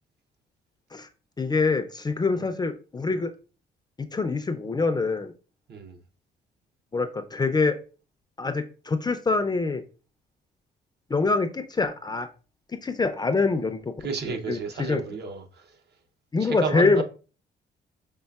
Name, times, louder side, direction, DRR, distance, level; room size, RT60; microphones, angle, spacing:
voice 1, 1.4-3.3 4.1-5.3 6.9-7.8 8.4-9.8 11.1-12.3 12.8-13.9 14.3-15.0 16.3-17.0, left 3 dB, 20° left, 0.4 m, -25 dB
voice 2, 14.0-15.7 16.4-17.0, right 4 dB, 55° right, 0.7 m, -32 dB
5.3 x 3.3 x 2.3 m
cardioid pair, 90°, 20 cm